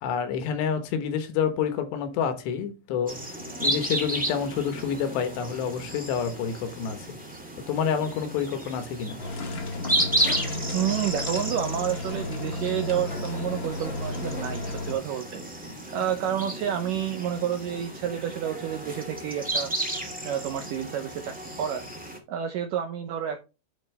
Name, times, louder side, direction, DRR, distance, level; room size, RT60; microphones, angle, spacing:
voice 1, 0.0-3.2 3.6-7.2 7.7-9.2, left 7 dB, 80° left, 3.4 m, -28 dB
sound 1, 3.1-22.2, right 1 dB, 10° right, 0.4 m, -33 dB
sound 2, 9.2-14.9, left 2 dB, 55° left, 1.3 m, -33 dB
voice 2, 10.7-19.7 20.2-21.8 22.3-23.4, right 9 dB, 80° right, 1.9 m, -30 dB
10.5 x 5.1 x 3.3 m
omnidirectional pair, 4.9 m